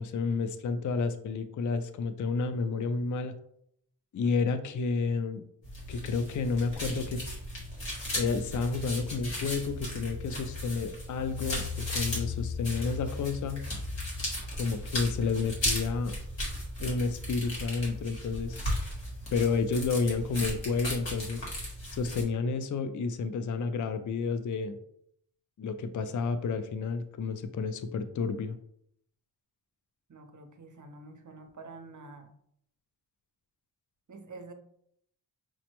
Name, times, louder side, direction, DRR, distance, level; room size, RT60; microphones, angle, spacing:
voice 1, 0.0-3.3 4.1-5.4 5.9-7.2 8.1-13.6 14.6-16.2 16.8-18.6 19.3-21.4 21.9-24.8 25.6-28.6, left 4 dB, 45° left, 9 dB, 0.4 m, -30 dB
sound 1, 5.6-22.2, left 1 dB, 80° left, 1.6 m, -36 dB
voice 2, 30.1-32.3 34.1-34.5, right 3 dB, 40° right, 6 dB, 0.6 m, -47 dB
6.1 x 2.1 x 2.9 m, 0.70 s
wide cardioid pair, 70°, 45 cm